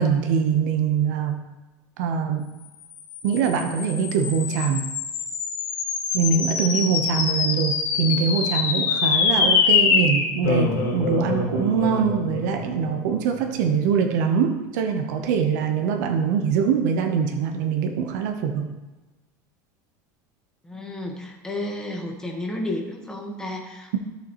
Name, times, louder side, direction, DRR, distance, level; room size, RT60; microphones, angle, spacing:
voice 1, 0.0-1.4 2.0-2.5 3.2-4.8 6.1-18.7, right 6 dB, 80° right, 4 dB, 1.0 m, -23 dB
sound 1, 3.0-13.6, left 5 dB, 80° left, 2.0 m, -25 dB
voice 2, 20.6-24.0, left 1 dB, 5° left, 0 dB, 1.4 m, -32 dB
12.5 x 6.9 x 3.1 m, 1.1 s
supercardioid pair, 145°, 10 cm